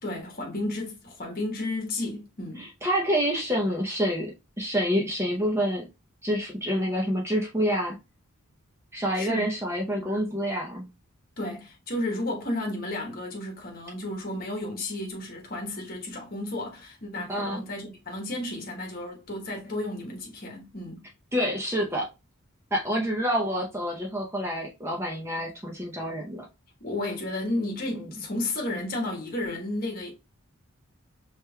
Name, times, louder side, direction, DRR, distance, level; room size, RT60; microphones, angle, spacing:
voice 1, 0.0-2.7 9.1-9.5 11.4-21.1 26.8-30.1, left 1 dB, 40° left, 1.1 m, -32 dB
voice 2, 2.6-5.8 6.2-8.0 8.9-10.9 17.3-17.6 21.3-22.1 22.7-26.4 27.9-28.1, equal, 10° right, 0.7 m, -27 dB
5.2 x 3.0 x 2.2 m
head